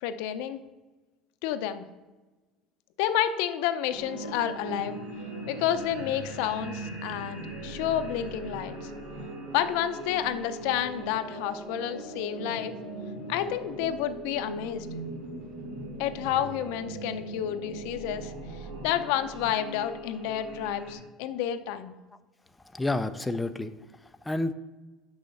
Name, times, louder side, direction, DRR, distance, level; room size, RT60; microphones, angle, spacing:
voice 1, 0.0-0.6 1.4-1.8 3.0-5.0 5.5-8.9 9.5-12.7 13.3-14.9 16.0-18.3 18.8-21.9, left 11 dB, 80° left, 9 dB, 0.6 m, -30 dB
sound 1, 3.9-20.9, right 2 dB, 80° right, 2.8 m, -40 dB
voice 2, 22.6-24.5, left 2 dB, 10° left, 9 dB, 0.3 m, -30 dB
6.3 x 5.6 x 7.0 m, 1.2 s
cardioid pair, 155°, 0 cm